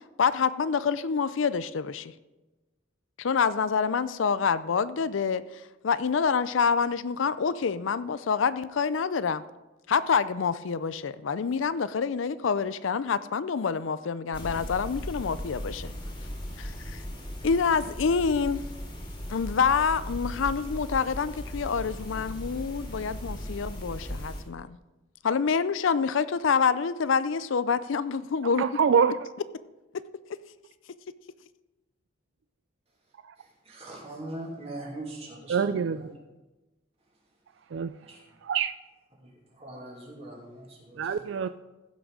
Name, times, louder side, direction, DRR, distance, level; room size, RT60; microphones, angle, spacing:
voice 1, 0.2-2.1 3.2-9.4 9.9-15.9 16.6-17.0 17.4-18.6 19.3-24.8 25.2-28.7, left 6 dB, 75° left, 15 dB, 0.5 m, -27 dB
sound 1, 14.3-24.4, equal, 25° left, 2.2 m, -37 dB
voice 2, 28.6-29.2 35.5-36.1 37.7-37.9 38.4-38.7 41.0-41.5, right 6 dB, 65° right, 12 dB, 0.3 m, -25 dB
voice 3, 33.4-36.1 38.0-38.2 39.2-39.3 39.6-41.3, right 1 dB, 30° right, -3 dB, 2.9 m, -41 dB
15.5 x 6.2 x 4.9 m, 1.1 s
head